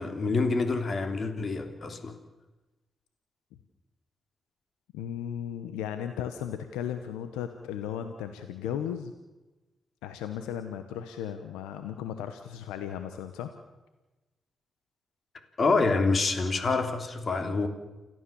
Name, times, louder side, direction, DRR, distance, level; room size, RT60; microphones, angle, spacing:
voice 1, 0.0-2.1 15.6-17.7, left 3 dB, 50° left, 6 dB, 3.3 m, -27 dB
voice 2, 4.9-9.1 10.0-13.5, left 9 dB, 85° left, 8 dB, 1.1 m, -36 dB
29.0 x 13.0 x 7.1 m, 1.1 s
hypercardioid pair, 45°, 0 cm